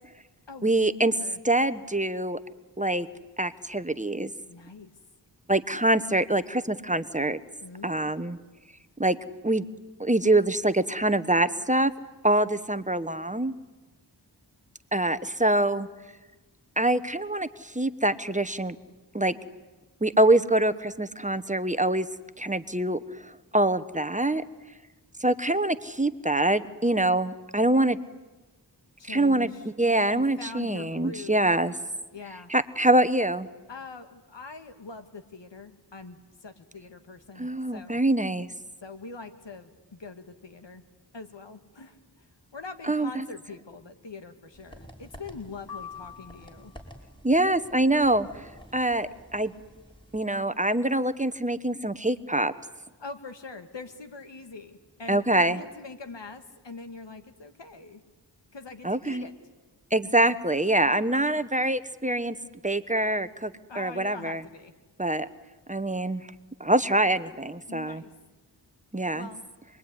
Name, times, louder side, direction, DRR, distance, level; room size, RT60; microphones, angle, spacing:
voice 1, 0.6-1.1 1.4-2.4 2.8-3.1 3.4-4.3 5.5-7.4 7.8-8.4 9.0-9.2 9.4-9.6 10.0-11.9 12.2-13.5 14.9-15.9 16.8-18.8 19.1-19.4 20.0-22.1 22.4-24.4 25.2-28.0 29.0-29.5 29.8-31.7 32.5-33.5 37.4-38.5 42.9-43.2 47.2-48.3 48.7-49.5 50.1-52.5 55.1-55.6 58.8-59.2 59.9-62.4 62.6-64.4 65.0-65.3 65.7-66.2 66.6-68.0 68.9-69.3, right 1 dB, 15° right, 12 dB, 1.2 m, -24 dB
voice 2, 4.5-4.9 7.6-8.1 29.0-31.5 32.1-32.5 33.7-38.0 38.8-40.8 41.1-42.3 42.5-46.7 53.0-58.0 58.5-59.3 63.7-64.7 67.7-68.1 69.1-69.4, left 4 dB, 90° left, 8 dB, 2.1 m, -43 dB
sound 1, 44.5-50.2, equal, 10° left, 5.1 m, -50 dB
sound 2, 45.7-47.0, left 7 dB, 60° left, 1.8 m, -44 dB
27.0 x 22.0 x 9.8 m, 1.2 s
wide cardioid pair, 50°, 42 cm